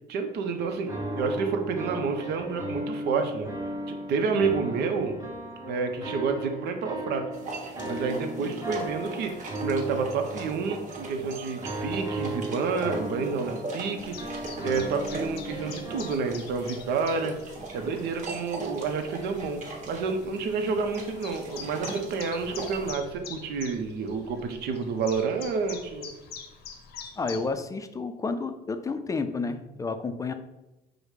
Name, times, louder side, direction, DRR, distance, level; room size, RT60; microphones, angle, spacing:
voice 1, 0.1-3.5 3.9-5.1 5.6-7.3 7.9-17.4 17.7-26.1, right 5 dB, 75° right, 6 dB, 0.7 m, -29 dB
sound 1, 0.6-16.2, right 1 dB, 20° right, 0.8 m, -36 dB
sound 2, 7.3-22.9, right 3 dB, 50° right, 1.1 m, -41 dB
Chirp tweet, 14.0-27.5, left 6 dB, 75° left, 0.7 m, -45 dB
voice 2, 27.2-30.3, left 4 dB, 20° left, 9 dB, 0.4 m, -31 dB
4.9 x 2.1 x 4.8 m, 0.97 s
cardioid pair, 110°, 17 cm